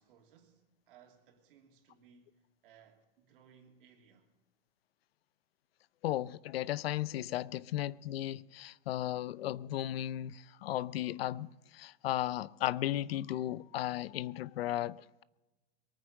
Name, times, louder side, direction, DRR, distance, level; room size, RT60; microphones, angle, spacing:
voice 1, 0.0-4.3 7.5-7.6, right 7 dB, 65° right, 2.9 m, -63 dB
voice 2, 6.0-15.2, left 13 dB, 85° left, 0.6 m, -35 dB
22.5 x 9.3 x 6.4 m
supercardioid pair, 170°, 29 cm